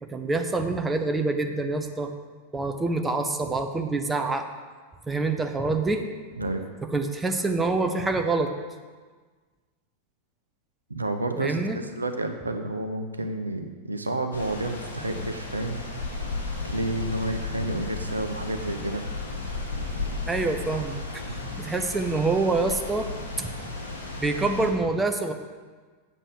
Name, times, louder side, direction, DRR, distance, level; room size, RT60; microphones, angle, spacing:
voice 1, 0.0-2.1 2.5-4.5 5.1-6.1 6.9-8.5 11.4-11.8 20.3-21.2 21.6-23.1 23.4-23.5 24.2-25.3, right 3 dB, 10° right, 5 dB, 0.8 m, -26 dB
voice 2, 10.9-15.8 16.6-19.0 21.3-21.4, right 2 dB, 80° right, 6 dB, 0.8 m, -30 dB
sound 1, 14.3-24.7, left 3 dB, 75° left, 2.2 m, -34 dB
8.1 x 7.7 x 6.3 m, 1.4 s
figure-of-eight pair, 90°, 0 cm